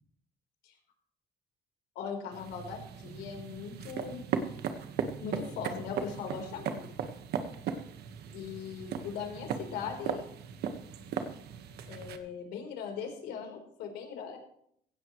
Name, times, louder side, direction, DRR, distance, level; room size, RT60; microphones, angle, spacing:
voice 1, 1.9-4.2 5.2-6.8 8.3-10.2 11.9-14.4, left 6 dB, 85° left, 3 dB, 4.2 m, -39 dB
sound 1, 2.3-12.2, right 7 dB, 70° right, 1.5 m, -37 dB
17.0 x 16.0 x 3.2 m, 0.69 s
cardioid pair, 110°, 17 cm